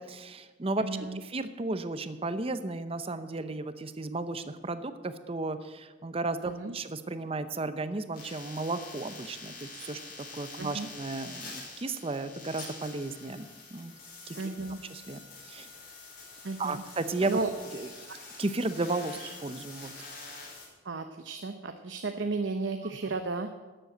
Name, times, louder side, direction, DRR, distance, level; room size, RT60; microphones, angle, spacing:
voice 1, 0.0-0.9 1.1-13.9 14.3-14.4 14.9-15.2 15.5-15.7 16.6-17.4 17.7-17.9 18.4-19.9, right 2 dB, 30° right, 11 dB, 0.7 m, -34 dB
voice 2, 0.8-1.2 6.4-6.7 10.6-10.9 14.3-14.8 16.4-16.8 17.2-17.5 18.1-18.2 19.2-19.3 20.8-23.5, right 3 dB, 80° right, 6 dB, 0.8 m, -34 dB
sound 1, 8.1-20.7, left 3 dB, 55° left, 4.8 m, -46 dB
12.5 x 7.7 x 7.8 m, 1.3 s
head